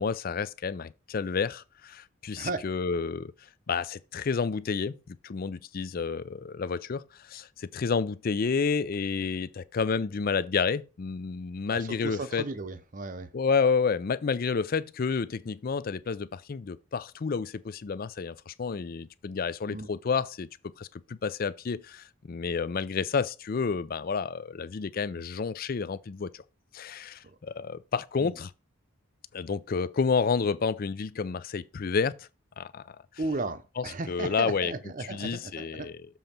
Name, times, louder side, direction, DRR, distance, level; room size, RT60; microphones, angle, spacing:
voice 1, 0.0-12.5 13.3-20.5 20.8-26.4 26.7-28.5 29.3-32.3 32.6-33.0 33.8-34.7 35.0-36.1, left 5 dB, 45° left, 0.4 m, -30 dB
voice 2, 11.7-13.3 19.7-19.9 27.2-27.4 28.2-28.3 33.2-35.9, right 2 dB, 40° right, 0.7 m, -35 dB
7.2 x 3.9 x 5.7 m
head